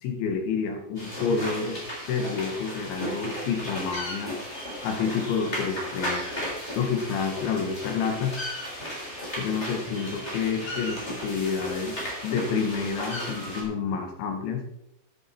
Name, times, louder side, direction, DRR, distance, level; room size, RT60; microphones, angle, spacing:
voice 1, 0.0-1.8 2.1-4.4 4.8-6.4 6.8-8.4 9.4-14.6, left 5 dB, 80° left, 4 dB, 4.0 m, -29 dB
sound 1, 0.9-13.6, equal, 15° left, 3.3 m, -35 dB
13.5 x 9.2 x 4.4 m, 0.80 s
omnidirectional pair, 5.2 m